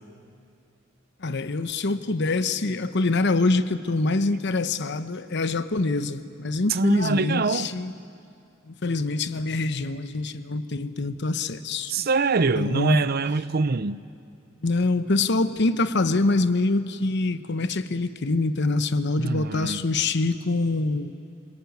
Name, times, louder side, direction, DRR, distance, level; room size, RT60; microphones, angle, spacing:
voice 1, 1.2-7.9 8.7-12.1 12.6-13.0 14.6-21.1, left 3 dB, 60° left, 12 dB, 1.0 m, -25 dB
voice 2, 6.7-7.7 11.9-14.0 19.2-19.8, right 3 dB, 50° right, 15 dB, 0.7 m, -24 dB
28.0 x 20.5 x 9.4 m, 2.4 s
head